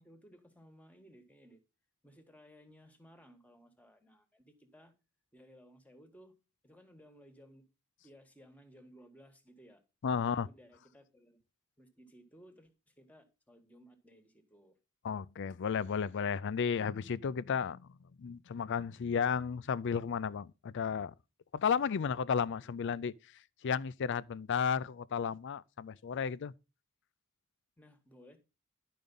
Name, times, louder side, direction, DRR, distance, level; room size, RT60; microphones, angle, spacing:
voice 1, 0.0-1.6 2.0-4.9 5.3-7.6 8.0-9.8 10.1-11.4 11.8-14.8 27.8-28.4, equal, 5° left, 1.3 m, -59 dB
voice 2, 10.0-10.5 15.0-21.1 21.5-23.1 23.6-26.5, left 6 dB, 60° left, 0.4 m, -33 dB
11.0 x 5.2 x 5.3 m
head